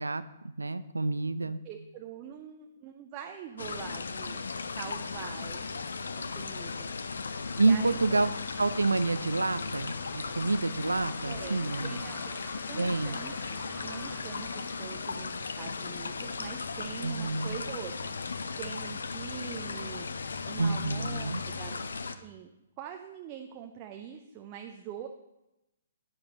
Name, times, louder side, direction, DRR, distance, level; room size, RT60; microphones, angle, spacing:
voice 1, 0.0-1.6 7.6-8.3 8.6-12.0 12.8-13.2 17.0-17.6 20.6-21.4, right 3 dB, 75° right, 14 dB, 0.5 m, -28 dB
voice 2, 1.4-5.9 6.3-6.9 7.6-8.3 11.2-12.3 12.7-14.5 14.8-18.1 18.6-21.8 22.2-22.5 22.8-25.1, right 9 dB, 25° right, 4 dB, 0.6 m, -44 dB
sound 1, 3.6-22.1, left 4 dB, 65° left, 0.6 m, -37 dB
sound 2, 6.8-17.8, equal, 10° left, 1.5 m, -52 dB
12.0 x 9.7 x 3.0 m, 0.93 s
figure-of-eight pair, 125°, 0 cm